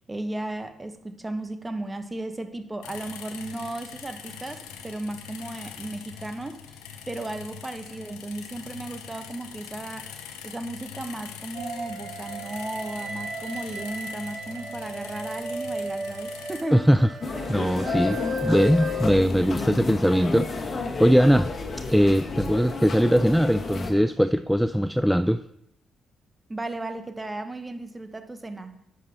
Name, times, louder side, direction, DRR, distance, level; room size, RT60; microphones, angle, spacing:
voice 1, 0.1-6.8 7.1-10.1 10.4-16.8 26.5-28.8, right 2 dB, 25° right, 9 dB, 1.0 m, -35 dB
sound 1, 2.8-16.6, left 8 dB, 80° left, 0.8 m, -43 dB
sound 2, 11.5-19.1, left 1 dB, 60° right, 3.4 m, -35 dB
voice 2, 16.7-17.1 17.5-21.5 21.9-25.4, equal, ahead, 12 dB, 0.3 m, -21 dB
sound 3, 17.2-23.9, left 3 dB, 45° left, 1.5 m, -32 dB
10.5 x 7.3 x 2.9 m, 0.79 s
hypercardioid pair, 40°, 0 cm